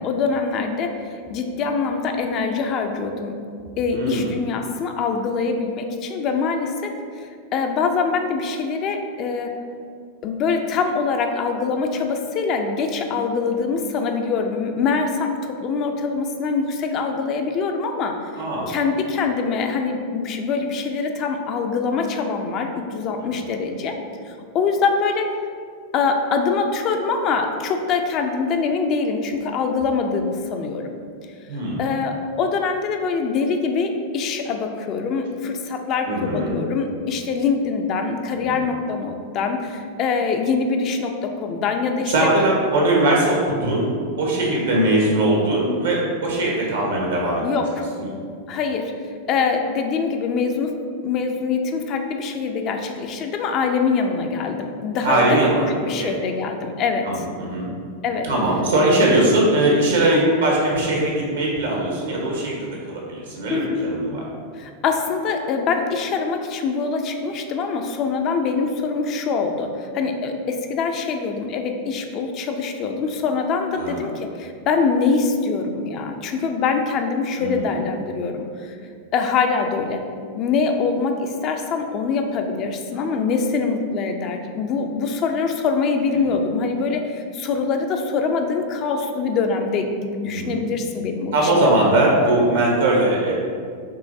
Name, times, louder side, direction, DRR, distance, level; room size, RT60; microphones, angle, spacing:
voice 1, 0.0-3.4 3.7-9.5 10.2-24.0 24.2-25.3 25.9-30.9 31.8-42.3 47.4-47.9 48.5-48.9 49.3-50.8 51.0-55.4 55.7-57.2 58.0-58.3 60.1-60.4 63.5-63.8 64.5-78.8 79.1-80.0 80.3-92.6, left 4 dB, 40° left, 4 dB, 0.4 m, -24 dB
voice 2, 3.9-4.3 18.4-18.7 23.3-23.5 31.5-31.8 36.1-36.5 38.4-38.6 42.1-47.4 55.0-55.7 56.0-56.1 57.0-57.7 58.2-64.2 73.8-74.0 77.4-77.8 86.2-86.3 90.2-90.6 91.3-93.3, right 1 dB, 75° right, -3 dB, 1.2 m, -20 dB
5.4 x 3.1 x 2.6 m, 2.2 s
hypercardioid pair, 95°, 0 cm